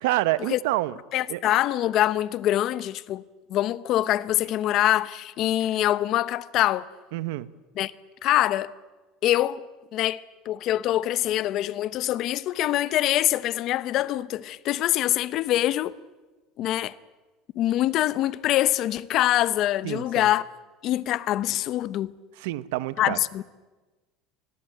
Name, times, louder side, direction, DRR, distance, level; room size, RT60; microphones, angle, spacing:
voice 1, 0.0-1.0 1.3-1.4 7.1-7.5 19.8-20.3 22.4-23.2, right 17 dB, 90° right, 1.0 m, -27 dB
voice 2, 1.1-3.2 3.5-6.9 7.8-7.9 8.2-8.7 9.2-9.6 9.9-16.0 16.6-16.9 17.6-20.5 20.8-22.1 23.0-23.4, left 13 dB, 40° left, 0.8 m, -24 dB
25.0 x 20.5 x 9.1 m
cardioid pair, 170°, 0 cm